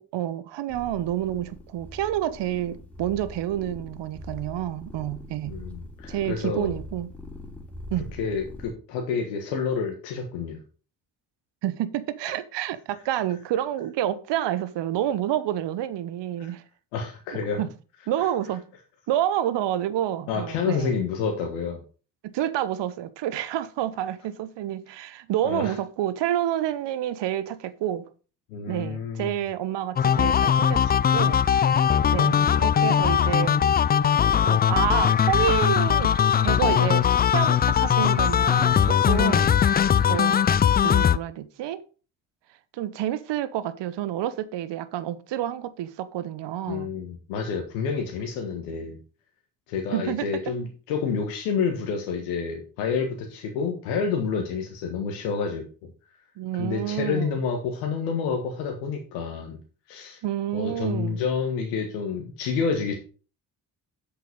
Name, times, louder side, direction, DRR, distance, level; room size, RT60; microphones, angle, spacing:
voice 1, 0.0-5.6 6.1-7.1 7.9-8.1 11.6-16.6 17.6-17.7 18.1-18.6 19.1-20.9 22.2-28.0 28.7-31.4 32.1-33.6 34.4-36.1 36.4-39.5 40.0-40.4 40.8-41.8 42.7-46.9 49.9-50.3 56.4-57.4 60.2-61.2, right 12 dB, 60° right, 1.0 m, -29 dB
sound 1, 0.7-8.7, left 1 dB, 5° left, 3.1 m, -42 dB
voice 2, 5.5-6.7 8.2-10.6 12.3-12.4 16.4-16.5 16.9-17.6 20.3-21.8 25.4-25.7 28.5-29.4 32.0-32.7 39.1-39.5 46.7-49.0 49.7-55.9 56.6-59.6 59.9-60.2 60.5-63.0, left 5 dB, 75° left, 1.5 m, -29 dB
sound 2, 30.0-41.2, left 8 dB, 20° left, 0.3 m, -20 dB
8.1 x 6.8 x 5.3 m
hypercardioid pair, 45°, 49 cm